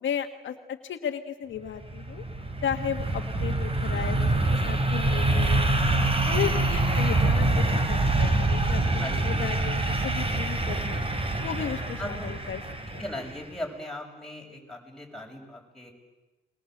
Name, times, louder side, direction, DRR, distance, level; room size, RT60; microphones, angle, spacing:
voice 1, 0.0-2.2 2.6-4.3 4.6-5.8 6.2-11.0 11.4-12.6, left 9 dB, 75° left, 6 dB, 1.6 m, -34 dB
sound 1, 1.7-13.4, right 2 dB, 30° right, 4.2 m, -25 dB
voice 2, 9.0-9.4 12.0-12.3 12.8-15.9, left 1 dB, 5° left, -1 dB, 7.0 m, -38 dB
29.0 x 21.5 x 8.0 m, 1.1 s
cardioid pair, 85°, 20 cm